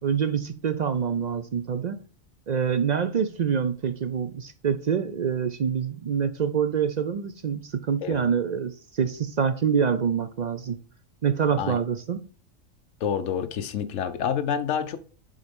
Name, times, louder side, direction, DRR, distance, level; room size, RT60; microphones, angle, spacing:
voice 1, 0.0-2.0 2.5-10.8 11.2-12.3, right 7 dB, 55° right, 0.4 m, -26 dB
voice 2, 13.0-15.0, left 8 dB, 70° left, 1.1 m, -28 dB
7.5 x 4.0 x 5.2 m
omnidirectional pair, 1.4 m